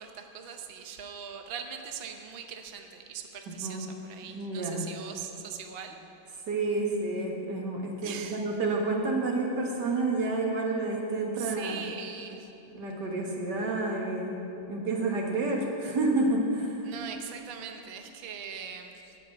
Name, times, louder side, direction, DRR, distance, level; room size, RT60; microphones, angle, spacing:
voice 1, 0.0-6.0 8.0-8.4 11.4-12.5 16.8-19.2, right 7 dB, 85° right, 5 dB, 0.5 m, -41 dB
voice 2, 4.2-4.8 6.5-11.8 12.7-14.3 14.7-16.8, right 2 dB, 60° right, 0 dB, 2.0 m, -29 dB
14.0 x 5.2 x 8.4 m, 2.9 s
omnidirectional pair, 2.2 m